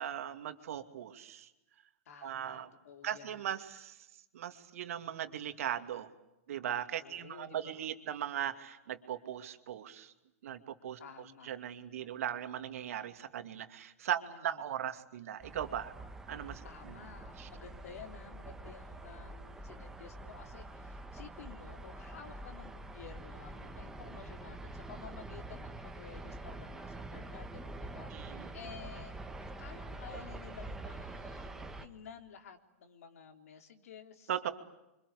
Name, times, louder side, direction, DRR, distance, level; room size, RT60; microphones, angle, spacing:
voice 1, 0.0-1.5 2.2-2.7 3.0-4.0 4.3-6.1 6.5-10.1 10.4-11.0 11.4-15.9 16.3-16.6 17.4-17.5 28.1-28.5 34.3-34.5, right 10 dB, 70° right, 8 dB, 2.5 m, -38 dB
voice 2, 2.1-3.5 7.0-7.9 11.0-11.5 14.1-14.7 16.6-34.3, left 7 dB, 75° left, 6 dB, 3.7 m, -52 dB
sound 1, 15.4-31.9, right 2 dB, 5° right, 1.7 m, -46 dB
27.5 x 25.0 x 8.5 m, 0.92 s
hypercardioid pair, 145°, 8 cm